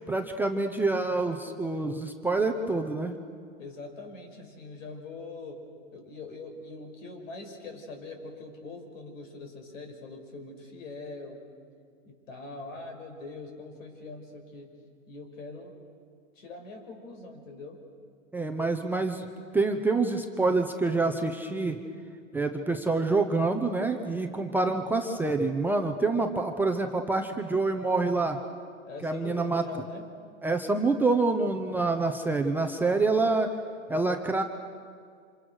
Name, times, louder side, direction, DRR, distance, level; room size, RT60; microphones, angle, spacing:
voice 1, 0.0-3.1 18.3-19.3 19.5-21.8 22.3-28.4 29.0-29.6 30.4-33.5 33.9-34.4, right 3 dB, 5° right, 3 dB, 0.7 m, -27 dB
voice 2, 3.6-5.6 5.9-11.5 12.0-14.7 15.1-15.8 16.4-17.8 28.9-30.1, left 3 dB, 70° left, 4 dB, 5.7 m, -42 dB
27.5 x 26.5 x 6.5 m, 2.2 s
hypercardioid pair, 140°, 41 cm